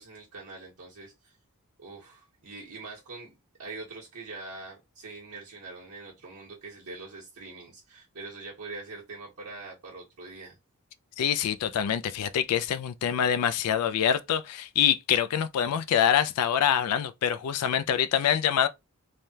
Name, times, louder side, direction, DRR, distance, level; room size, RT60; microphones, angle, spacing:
voice 1, 0.0-1.4 1.8-10.6, right 3 dB, 70° right, 1.1 m, -43 dB
voice 2, 11.2-18.7, left 9 dB, 90° left, 0.3 m, -25 dB
3.3 x 2.2 x 2.7 m
head